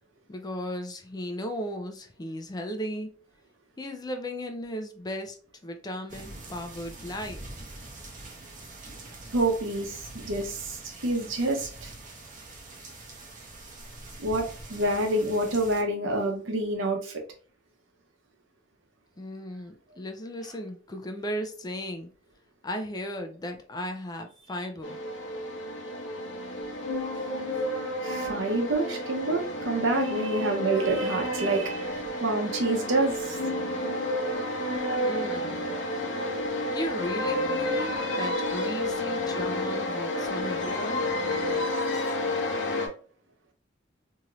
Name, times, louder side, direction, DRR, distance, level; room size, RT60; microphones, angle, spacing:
voice 1, 0.3-3.1 3.8-5.4 5.6-7.4 19.2-22.1 22.6-25.0 35.0-35.7 36.7-41.1, equal, 20° left, 0.4 m, -36 dB
sound 1, 6.1-15.8, right 2 dB, 40° right, 0.8 m, -44 dB
voice 2, 9.3-11.9 14.2-17.1 28.0-33.4, right 2 dB, 85° right, 0.8 m, -28 dB
sound 2, 24.8-42.9, left 1 dB, 70° left, 0.8 m, -30 dB
2.8 x 2.5 x 2.9 m
head